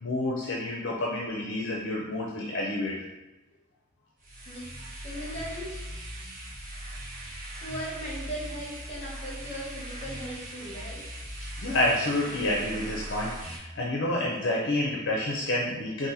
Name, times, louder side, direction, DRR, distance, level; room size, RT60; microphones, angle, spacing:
voice 1, 0.0-3.0 11.6-16.1, left 1 dB, 55° left, -3 dB, 0.6 m, -29 dB
sound 1, 4.2-13.6, right 1 dB, 40° right, 1.2 m, -40 dB
voice 2, 5.0-5.7 7.6-11.0, equal, 30° left, -4 dB, 1.4 m, -38 dB
4.1 x 2.6 x 4.0 m, 1.0 s
head